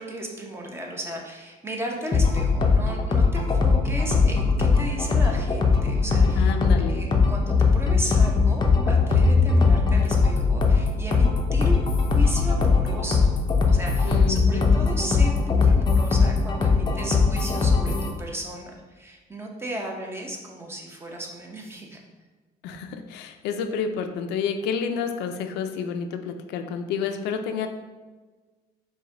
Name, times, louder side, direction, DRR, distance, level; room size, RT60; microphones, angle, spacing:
voice 1, 0.0-13.4 13.7-22.0, right 1 dB, 15° right, 0 dB, 0.7 m, -35 dB
sound 1, 2.1-18.1, left 4 dB, 25° left, 0.5 m, -20 dB
voice 2, 6.4-7.1 14.0-14.7 22.6-27.7, left 6 dB, 85° left, 7 dB, 0.4 m, -29 dB
4.8 x 2.2 x 3.7 m, 1.3 s
cardioid pair, 110°, 17 cm